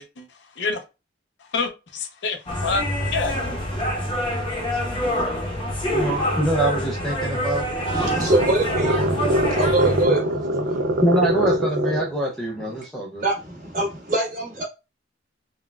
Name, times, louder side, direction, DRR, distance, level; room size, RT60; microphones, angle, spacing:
voice 1, 1.5-2.8 3.1-3.7, left 4 dB, 65° left, 0.5 m, -27 dB
sound 1, 2.5-10.0, equal, 25° left, 0.7 m, -26 dB
voice 2, 5.9-7.7 11.0-13.2, right 1 dB, 5° left, 0.4 m, -24 dB
sound 2, 7.3-12.2, equal, 60° right, 0.5 m, -23 dB
voice 3, 7.9-10.9 12.7-12.8 13.2-14.6, right 2 dB, 45° right, 1.3 m, -25 dB
3.9 x 2.2 x 2.2 m
head